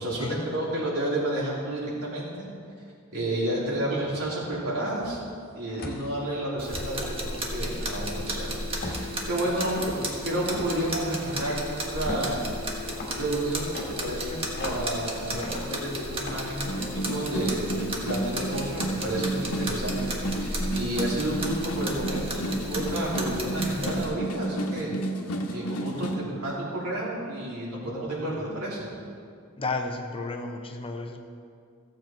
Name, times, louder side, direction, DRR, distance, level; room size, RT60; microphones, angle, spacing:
voice 1, 0.0-2.5 3.1-5.2 5.5-12.4 13.1-24.9 25.5-28.9, right 1 dB, 85° right, -6 dB, 3.3 m, -31 dB
sound 1, 5.0-5.3 5.8-6.1 6.7-6.9 8.8-9.2 9.6-10.0 10.5-10.8 11.3-11.6 12.0-12.4 12.9-13.2 13.7-14.9 15.4-15.8 16.2-16.5, left 1 dB, 45° left, 1.6 m, -37 dB
sound 2, 6.6-24.1, equal, 25° right, 1.4 m, -34 dB
sound 3, 16.7-26.2, right 1 dB, 85° left, 1.1 m, -31 dB
voice 2, 29.6-31.2, left 3 dB, 25° left, 4 dB, 0.7 m, -33 dB
15.0 x 7.6 x 4.5 m, 2.3 s
head